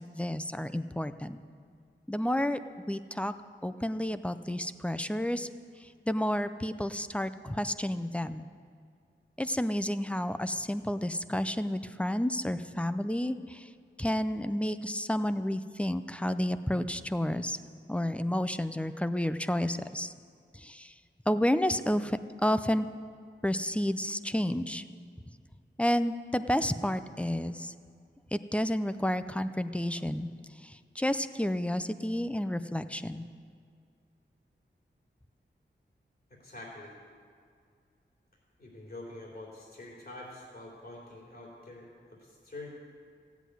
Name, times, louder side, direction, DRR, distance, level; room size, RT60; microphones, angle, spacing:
voice 1, 0.0-1.4 2.1-2.6 2.9-3.3 3.6-5.5 6.1-8.5 9.4-13.7 14.0-17.6 17.9-20.1 20.5-20.9 21.3-22.9 23.4-24.8 25.8-27.7 28.3-30.3 30.6-33.2, left 1 dB, 5° left, 11 dB, 0.5 m, -30 dB
voice 2, 36.3-37.0 38.6-41.9 42.2-42.7, left 2 dB, 50° left, -3 dB, 3.3 m, -46 dB
15.5 x 8.3 x 9.3 m, 2.2 s
wide cardioid pair, 105°, 20 cm